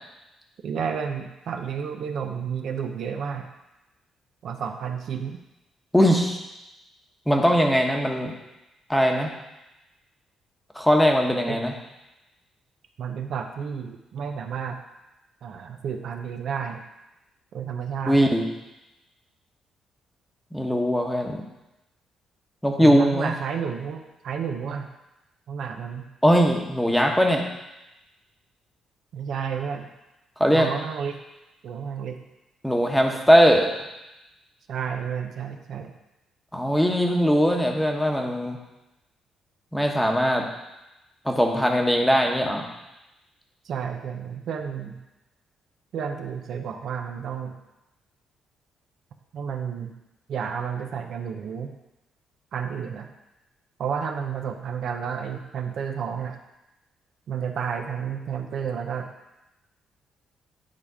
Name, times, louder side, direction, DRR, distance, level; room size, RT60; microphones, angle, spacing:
voice 1, 0.6-3.5 4.4-5.4 11.5-11.6 13.0-14.8 15.4-16.8 17.5-18.2 22.8-24.9 25.5-26.1 29.1-29.9 30.5-31.2 31.6-32.2 34.7-35.9 43.6-45.0 45.9-47.6 49.3-49.9 50.3-51.7 52.5-53.1 53.8-56.4 57.3-59.1, right 7 dB, 70° right, 4 dB, 0.6 m, -31 dB
voice 2, 5.9-6.4 7.3-8.3 8.9-9.3 10.7-11.7 18.1-18.5 20.5-21.4 22.6-23.3 26.2-27.4 30.4-30.7 32.6-33.7 36.5-38.6 39.7-40.4 41.2-42.6, equal, 5° left, 2 dB, 1.1 m, -20 dB
9.5 x 3.4 x 4.9 m, 0.98 s
cardioid pair, 90°, 0 cm